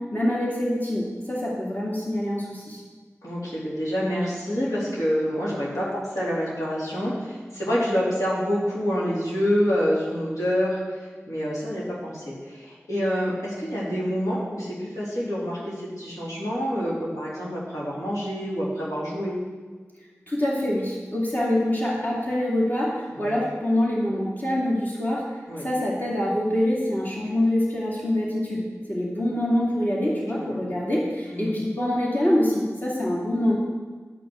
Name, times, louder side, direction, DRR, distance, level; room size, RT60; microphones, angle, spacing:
voice 1, 0.0-2.8 20.3-25.2 25.6-33.6, left 1 dB, 35° left, -5 dB, 2.6 m, -25 dB
voice 2, 3.2-19.4 23.2-23.4 25.5-25.7 30.5-30.6 31.2-31.6, equal, 85° left, -7 dB, 3.7 m, -27 dB
11.0 x 6.1 x 6.4 m, 1.4 s
wide cardioid pair, 50°, 5 cm